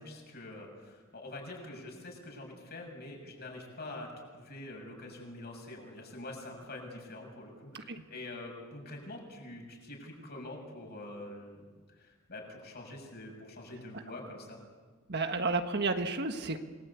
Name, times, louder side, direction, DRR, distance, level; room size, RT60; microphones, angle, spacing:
voice 1, 0.0-4.1 4.3-11.7 12.0-14.6, left 2 dB, 45° left, 1 dB, 6.8 m, -45 dB
voice 2, 15.1-16.6, right 3 dB, 50° right, 7 dB, 1.5 m, -31 dB
27.5 x 20.5 x 8.4 m, 1.4 s
head